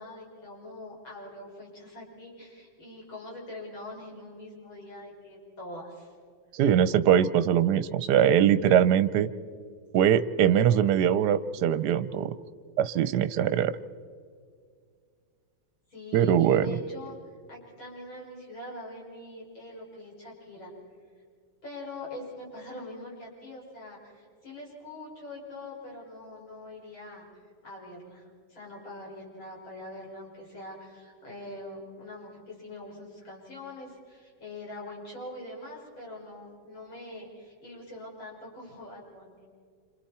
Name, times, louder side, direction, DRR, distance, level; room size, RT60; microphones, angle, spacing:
voice 1, 0.0-6.1 15.9-17.2 17.5-20.7 21.6-27.3 27.6-39.5, left 1 dB, 90° left, -4 dB, 6.5 m, -43 dB
voice 2, 6.5-9.3 9.9-12.3 12.8-13.7 16.1-16.8, right 9 dB, 65° right, 13 dB, 1.2 m, -22 dB
28.0 x 27.0 x 4.3 m, 2.1 s
omnidirectional pair, 2.1 m